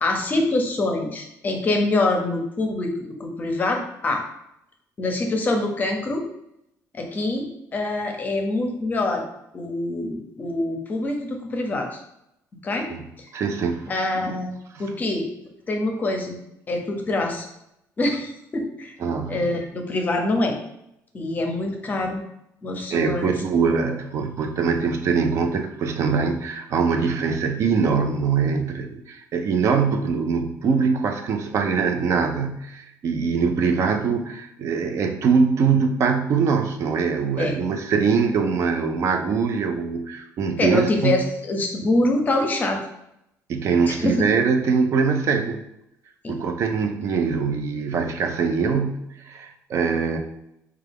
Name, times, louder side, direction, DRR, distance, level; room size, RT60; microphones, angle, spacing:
voice 1, 0.0-2.9 3.2-4.2 5.0-6.2 6.9-9.3 9.5-12.0 12.6-12.9 13.2-13.3 13.9-14.5 14.8-15.3 15.7-16.4 16.7-17.5 18.0-19.0 19.3-20.6 21.1-22.2 22.6-23.3 37.4-37.6 40.6-42.8 43.9-44.2 46.2-46.4, left 2 dB, 30° left, 3 dB, 0.6 m, -25 dB
voice 2, 13.3-13.9 14.3-14.4 14.7-15.0 19.0-19.5 22.9-41.2 43.5-45.6 46.3-50.2, right 5 dB, 55° right, 5 dB, 0.5 m, -23 dB
4.6 x 2.3 x 3.4 m, 0.82 s
cardioid pair, 135°, 6 cm